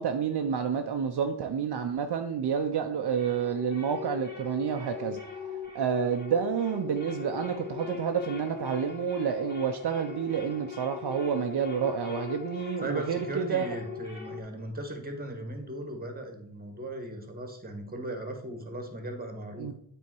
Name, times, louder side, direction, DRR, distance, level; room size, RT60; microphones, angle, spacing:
voice 1, 0.0-5.2 5.7-13.7 19.6-19.7, right 7 dB, 60° right, 5 dB, 0.6 m, -29 dB
sound 1, 2.4-14.4, left 7 dB, 20° left, 1.6 m, -40 dB
voice 2, 12.8-19.7, right 1 dB, 20° right, 5 dB, 1.4 m, -37 dB
8.5 x 3.6 x 4.6 m, 0.69 s
wide cardioid pair, 100°, 44 cm